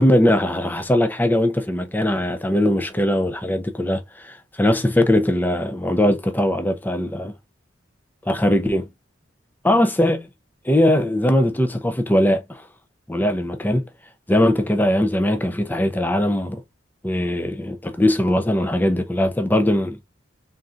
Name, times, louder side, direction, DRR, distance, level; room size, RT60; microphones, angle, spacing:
voice 1, 0.0-7.3 8.2-8.9 9.6-10.3 10.6-12.7 13.1-13.9 14.3-16.6 17.0-20.0, left 1 dB, 10° left, 0.6 m, -20 dB
3.9 x 3.7 x 2.4 m
head